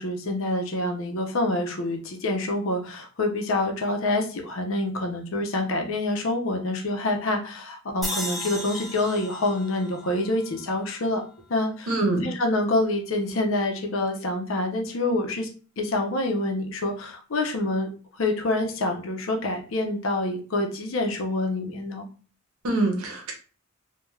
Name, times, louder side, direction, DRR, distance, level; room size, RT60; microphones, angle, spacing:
voice 1, 0.0-11.2 11.5-11.9 12.2-15.5 15.8-17.9 18.2-22.0, left 2 dB, 65° left, 3 dB, 0.6 m, -26 dB
sound 1, 8.0-11.3, equal, ahead, 0.5 m, -35 dB
voice 2, 11.9-12.3 22.6-23.3, right 2 dB, 80° right, 3 dB, 0.8 m, -24 dB
3.1 x 2.2 x 2.2 m, 0.37 s
head